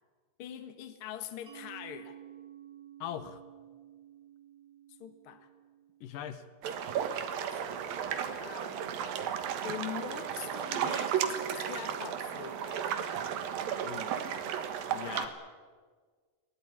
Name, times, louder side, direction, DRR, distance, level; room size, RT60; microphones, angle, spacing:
voice 1, 0.4-2.2 5.0-5.5 6.8-6.9 7.5-8.0 8.4-9.0 9.6-12.9, left 10 dB, 50° left, 9 dB, 1.8 m, -43 dB
Mallet percussion, 1.5-6.8, right 11 dB, 50° right, 4.4 m, -53 dB
voice 2, 3.0-3.4 6.0-6.5 13.7-14.5 14.9-15.4, left 10 dB, 75° left, 11 dB, 2.6 m, -41 dB
sound 1, 6.6-15.3, right 8 dB, 75° right, 3.2 m, -34 dB
23.0 x 18.0 x 9.8 m, 1.5 s
omnidirectional pair, 4.1 m